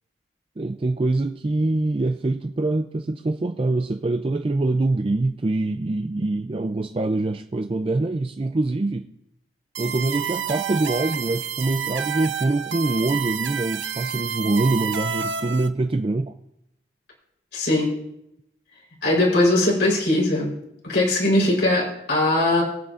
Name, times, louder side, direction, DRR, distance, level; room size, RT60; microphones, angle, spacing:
voice 1, 0.6-9.0 9.8-16.3, right 2 dB, 30° right, 6 dB, 0.4 m, -24 dB
sound 1, 9.7-15.7, right 8 dB, 85° right, 0.8 m, -29 dB
voice 2, 17.5-17.9 19.0-20.5 20.8-22.6, left 1 dB, 70° left, -4 dB, 4.0 m, -20 dB
23.0 x 8.2 x 2.5 m, 0.83 s
head